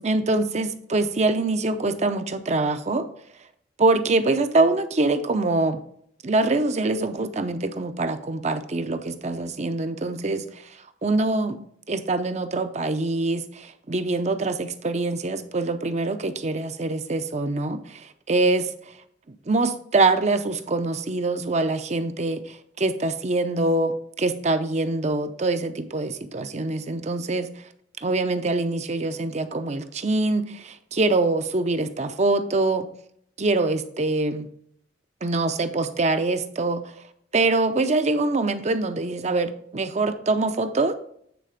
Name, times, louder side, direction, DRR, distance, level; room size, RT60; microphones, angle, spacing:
voice 1, 0.0-3.1 3.8-5.8 6.2-11.6 11.9-18.7 19.3-27.6 28.0-32.9 33.4-34.5 35.2-36.9 37.3-40.9, right 2 dB, 40° right, 9 dB, 0.6 m, -24 dB
9.2 x 4.1 x 5.1 m, 0.66 s
head